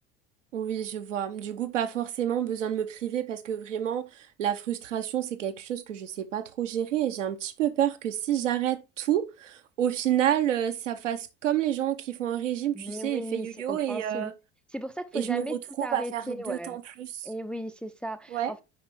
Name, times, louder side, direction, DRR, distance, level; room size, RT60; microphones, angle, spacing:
voice 1, 0.5-14.3 15.1-17.3 18.3-18.5, right 10 dB, 70° right, 0.8 m, -29 dB
voice 2, 12.7-14.3 14.7-15.5 15.8-16.8 17.2-18.6, right 1 dB, 5° left, 0.4 m, -36 dB
5.1 x 5.1 x 4.5 m
figure-of-eight pair, 65°, 38 cm